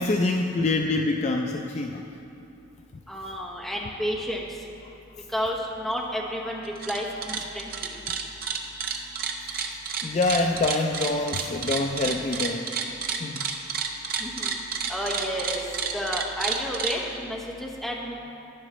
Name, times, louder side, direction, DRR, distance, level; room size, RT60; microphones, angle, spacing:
voice 1, 0.0-2.1 10.0-12.7 13.2-13.5, left 2 dB, 35° left, 2 dB, 0.3 m, -25 dB
voice 2, 3.1-4.5 5.3-6.6 6.9-8.0 14.2-14.5 14.9-15.6 15.9-18.2, equal, ahead, -2 dB, 0.9 m, -31 dB
sound 1, 6.6-7.0 7.2-16.9, right 6 dB, 45° right, 0.6 m, -30 dB
11.0 x 10.0 x 3.1 m, 2.8 s
head